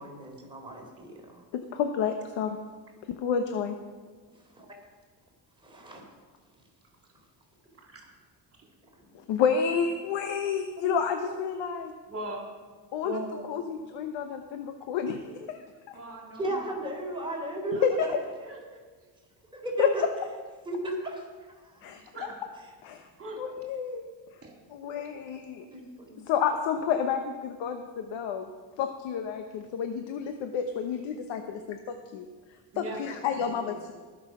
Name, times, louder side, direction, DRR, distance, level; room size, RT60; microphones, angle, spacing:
voice 1, 0.0-1.4 4.5-4.7 5.6-6.0 10.8-11.7 13.0-13.5 16.4-18.1 19.5-20.1 20.7-21.8 25.7-26.2, right 2 dB, 10° right, -1 dB, 3.7 m, -35 dB
voice 2, 1.5-2.6 3.1-3.7 9.3-11.9 12.9-13.2 13.5-15.6 15.9-16.0 17.7-17.9 19.8-20.1 21.8-22.0 22.8-23.1 23.4-24.0 24.7-25.6 26.3-28.5 28.8-31.8 32.1-32.3 32.8-33.9, left 7 dB, 80° left, 6 dB, 1.1 m, -30 dB
voice 3, 12.1-12.5 15.9-16.6 17.7-17.8 18.4-19.1 21.7-22.3 23.2-23.4 24.4-24.5 32.7-33.9, right 1 dB, 30° right, 0 dB, 3.3 m, -42 dB
19.5 x 6.6 x 6.1 m, 1.4 s
cardioid pair, 110°, 45 cm